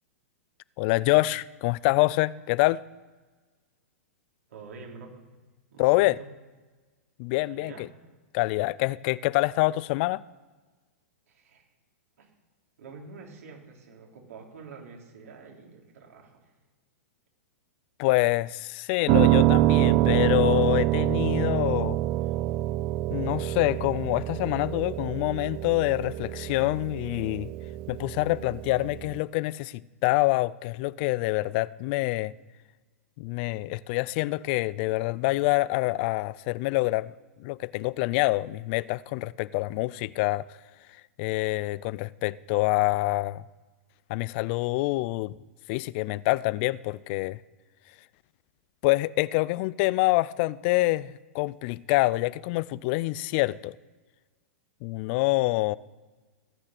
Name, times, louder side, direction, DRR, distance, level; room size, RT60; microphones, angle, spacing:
voice 1, 0.8-2.8 5.8-6.2 7.2-7.9 8.3-10.2 18.0-22.0 23.1-27.5 27.9-32.3 33.2-37.1 37.4-40.4 41.2-43.4 44.1-45.4 45.7-47.4 48.8-53.8 54.8-55.8, left 20 dB, 45° left, 0.4 m, -26 dB
voice 2, 4.5-5.2 5.7-6.3 7.5-7.9 11.3-11.7 12.2-12.3 12.8-16.5, right 4 dB, 80° right, 4.0 m, -47 dB
Piano, 19.1-29.2, right 16 dB, 45° right, 0.5 m, -26 dB
16.5 x 6.5 x 7.6 m
hypercardioid pair, 130°, 8 cm